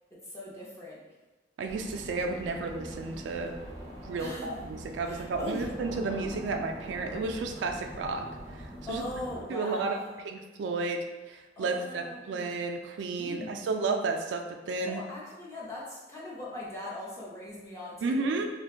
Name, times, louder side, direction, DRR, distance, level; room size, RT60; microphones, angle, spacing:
voice 1, 0.1-1.0 4.2-4.7 5.0-5.7 8.9-10.2 11.6-12.5 13.2-13.7 14.8-18.4, left 1 dB, 15° left, -6 dB, 0.7 m, -40 dB
voice 2, 1.6-3.6 4.0-8.3 8.9-9.0 9.5-10.0 10.2-15.0 18.0-18.5, right 3 dB, 85° right, 4 dB, 0.3 m, -32 dB
sound 1, 1.7-9.4, equal, 75° left, 1.4 m, -43 dB
2.5 x 2.2 x 3.6 m, 1.2 s
head